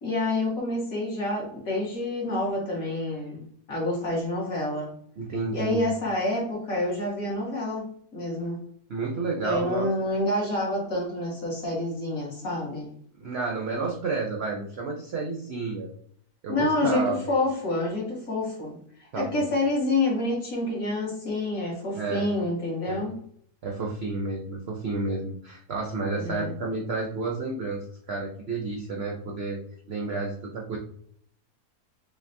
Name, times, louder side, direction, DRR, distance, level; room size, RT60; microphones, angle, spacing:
voice 1, 0.0-4.9 5.5-7.9 8.1-8.6 9.4-12.9 16.5-18.7 19.0-23.2 26.2-26.6, left 2 dB, 55° left, -3 dB, 1.7 m, -28 dB
voice 2, 5.2-5.8 8.9-9.9 13.1-15.9 16.4-17.4 19.1-19.5 21.9-22.3 22.9-23.0 23.6-29.6 29.9-30.8, right 3 dB, 75° right, 0 dB, 0.5 m, -31 dB
5.7 x 2.1 x 2.6 m, 0.64 s
omnidirectional pair, 1.8 m